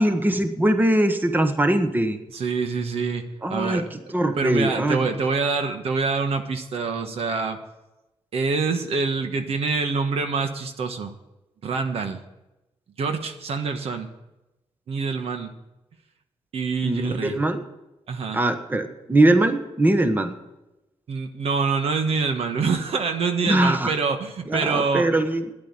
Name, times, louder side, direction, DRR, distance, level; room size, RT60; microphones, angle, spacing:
voice 1, 0.0-2.2 3.4-5.1 16.8-17.6 18.3-20.3 23.4-23.9 24.5-25.5, right 1 dB, 20° right, 7 dB, 1.3 m, -21 dB
voice 2, 2.3-3.9 4.4-7.6 8.3-11.1 11.6-12.2 13.0-14.1 14.9-15.5 16.5-17.3 18.1-18.4 21.1-25.1, right 4 dB, 75° right, 6 dB, 1.4 m, -25 dB
10.5 x 8.4 x 9.9 m, 0.95 s
cardioid pair, 90°, 10 cm